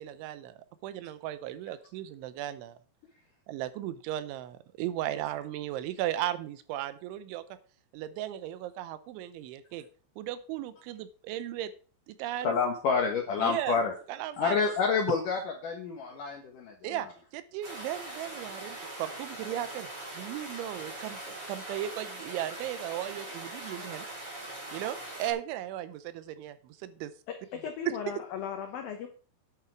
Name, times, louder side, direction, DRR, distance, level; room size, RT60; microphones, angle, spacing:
voice 1, 0.0-2.8 3.5-7.4 7.9-9.9 10.2-11.7 12.1-12.6 13.4-13.8 14.1-14.6 16.8-17.1 17.3-19.9 20.2-24.1 24.7-27.1 27.9-28.1, right 12 dB, 80° right, 13 dB, 3.0 m, -36 dB
voice 2, 12.4-13.9 14.4-17.1, left 5 dB, 70° left, 2 dB, 2.0 m, -28 dB
sound 1, 17.6-25.3, right 2 dB, 25° right, 3.8 m, -41 dB
voice 3, 27.3-29.1, left 8 dB, 90° left, 5 dB, 2.0 m, -37 dB
10.0 x 8.8 x 4.6 m, 0.40 s
omnidirectional pair, 5.6 m